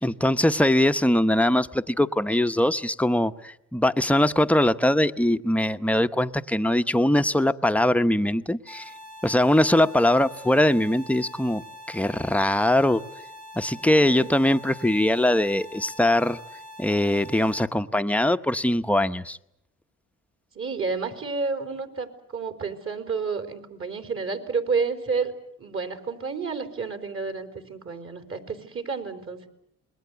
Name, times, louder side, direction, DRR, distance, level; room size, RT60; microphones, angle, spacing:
voice 1, 0.0-8.9 9.2-11.6 11.9-13.0 13.6-16.4 16.8-19.4, left 1 dB, 5° left, 9 dB, 0.9 m, -22 dB
sound 1, 8.7-17.7, left 1 dB, 70° right, 3.3 m, -44 dB
voice 2, 13.7-14.3 20.5-25.3 25.6-29.5, right 4 dB, 45° right, 7 dB, 4.2 m, -30 dB
27.5 x 21.5 x 8.1 m, 0.78 s
cardioid pair, 90°, 30 cm